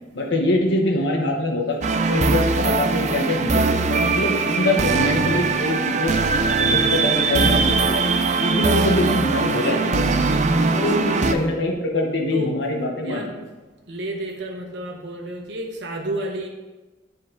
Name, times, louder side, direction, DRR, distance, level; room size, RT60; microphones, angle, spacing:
voice 1, 0.1-1.8 2.1-6.1 6.5-8.0 8.4-10.1 10.7-13.3, left 1 dB, 70° left, 0 dB, 1.1 m, -24 dB
sound 1, 1.8-11.3, right 4 dB, 40° right, 0.4 m, -21 dB
voice 2, 5.8-6.6 10.5-11.1 12.3-12.6 13.0-13.3 13.9-16.5, right 1 dB, 65° right, 1 dB, 0.9 m, -32 dB
9.4 x 5.2 x 3.9 m, 1.2 s
head